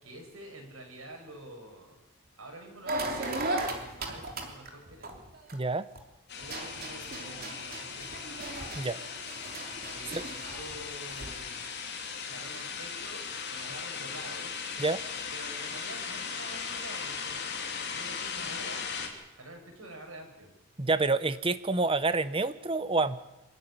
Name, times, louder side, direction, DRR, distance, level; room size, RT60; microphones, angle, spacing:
voice 1, 0.0-2.0 2.4-5.2 6.4-8.4 9.9-11.6 12.2-13.2 13.5-14.5 15.3-17.4 17.9-20.5, right 1 dB, 80° right, 2 dB, 6.4 m, -47 dB
sound 1, 2.9-6.0 6.4-11.4, right 2 dB, 45° right, 3.2 m, -37 dB
voice 2, 5.5-5.9 8.8-9.0 10.1-10.2 14.8-15.0 20.8-23.2, right 3 dB, 25° right, 13 dB, 0.9 m, -28 dB
sound 2, 6.3-19.1, left 6 dB, 55° left, 3.4 m, -38 dB
25.5 x 13.5 x 10.0 m, 0.98 s
head